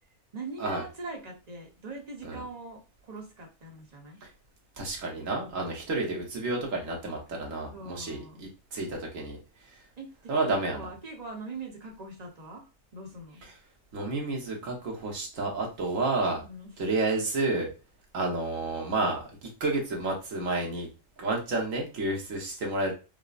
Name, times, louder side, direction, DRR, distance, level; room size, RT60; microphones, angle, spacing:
voice 1, 0.3-4.2 7.7-8.4 10.0-13.4 16.4-16.7, right 3 dB, 30° right, 1 dB, 1.0 m, -42 dB
voice 2, 4.8-9.4 10.3-10.9 13.9-16.4 16.8-17.7 18.1-20.9 21.2-22.9, right 2 dB, 65° right, 0 dB, 1.5 m, -30 dB
5.1 x 2.1 x 2.5 m, 0.30 s
omnidirectional pair, 1.5 m